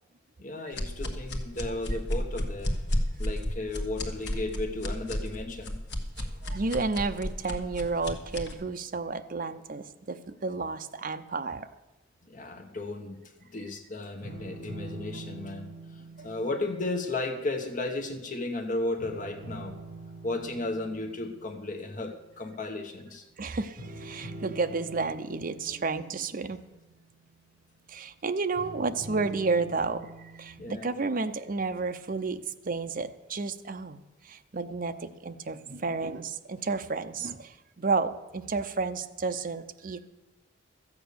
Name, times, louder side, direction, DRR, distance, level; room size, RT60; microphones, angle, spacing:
voice 1, 0.4-2.7 3.2-5.8 12.3-13.2 13.5-15.7 15.9-19.7 20.2-23.2 30.6-30.9, left 2 dB, 40° left, 5 dB, 1.1 m, -34 dB
sound 1, 0.7-8.5, equal, 55° left, 1.4 m, -32 dB
voice 2, 6.2-11.7 16.2-16.3 23.4-26.6 27.9-34.0 34.2-40.1, right 4 dB, 40° right, 8 dB, 0.6 m, -31 dB
sound 2, 14.2-18.6 19.0-22.3 23.8-27.8 28.5-30.7, right 2 dB, 60° right, 5.5 m, -45 dB
13.5 x 8.3 x 6.8 m, 1.1 s
head